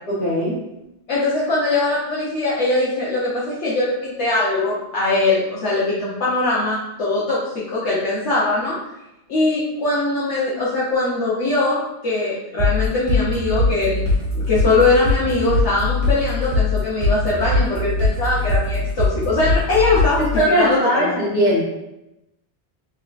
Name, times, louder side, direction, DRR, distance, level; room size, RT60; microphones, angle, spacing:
voice 1, 0.1-0.6 20.3-21.6, equal, 50° left, -11 dB, 1.2 m, -19 dB
voice 2, 1.1-8.8 9.3-14.1 14.3-20.3 20.5-21.2, left 2 dB, 75° left, -9 dB, 1.1 m, -21 dB
sound 1, 12.6-20.4, left 2 dB, 85° right, 1.2 m, -21 dB
3.6 x 3.1 x 2.4 m, 0.89 s
omnidirectional pair, 1.2 m